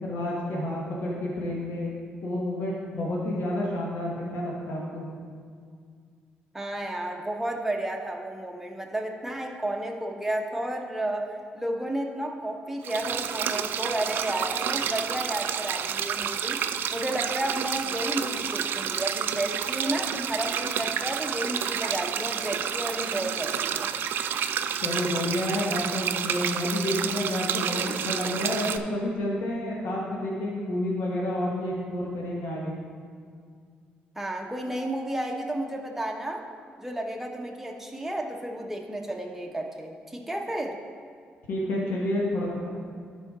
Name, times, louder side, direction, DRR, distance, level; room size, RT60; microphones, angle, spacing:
voice 1, 0.0-2.0 2.2-5.1 24.8-32.7 41.5-42.7, left 1 dB, 75° left, -3 dB, 1.4 m, -29 dB
voice 2, 6.5-16.6 16.9-23.9 34.2-36.4 36.8-40.8, right 1 dB, 10° right, 1 dB, 1.0 m, -32 dB
sound 1, 12.8-28.8, right 8 dB, 70° right, 0.4 m, -30 dB
12.5 x 4.8 x 3.7 m, 2.1 s
cardioid pair, 85°, 4 cm